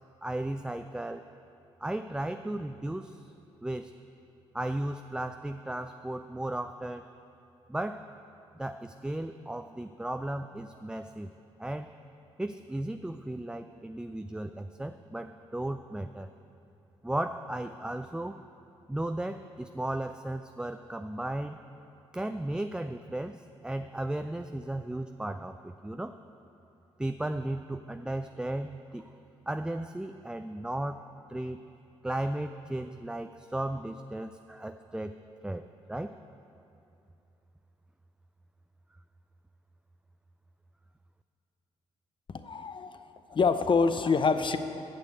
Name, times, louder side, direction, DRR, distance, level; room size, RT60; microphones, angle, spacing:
voice 1, 0.2-1.3 1.8-3.3 3.6-3.9 4.5-7.1 7.7-8.1 8.6-11.3 11.6-11.9 12.4-16.3 17.0-18.4 18.9-21.6 22.1-26.2 27.0-29.1 29.5-31.0 31.3-31.6 32.0-35.2 35.4-36.2, right 1 dB, 5° right, 8 dB, 0.3 m, -35 dB
voice 2, 42.3-43.0 43.3-44.6, left 5 dB, 40° left, 10 dB, 0.7 m, -26 dB
8.1 x 6.8 x 7.9 m, 2.8 s
hypercardioid pair, 50°, 13 cm